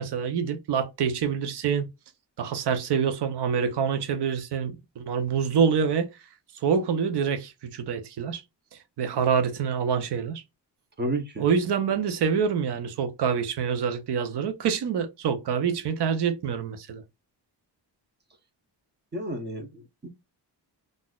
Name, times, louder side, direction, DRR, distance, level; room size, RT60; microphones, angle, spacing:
voice 1, 0.0-1.9 2.4-6.1 6.6-8.4 9.0-10.4 11.4-17.0, right 6 dB, 70° right, 0.7 m, -26 dB
voice 2, 11.0-11.5 19.1-20.1, right 1 dB, 25° right, 0.7 m, -31 dB
3.9 x 2.5 x 2.3 m
wide cardioid pair, 175°, 42 cm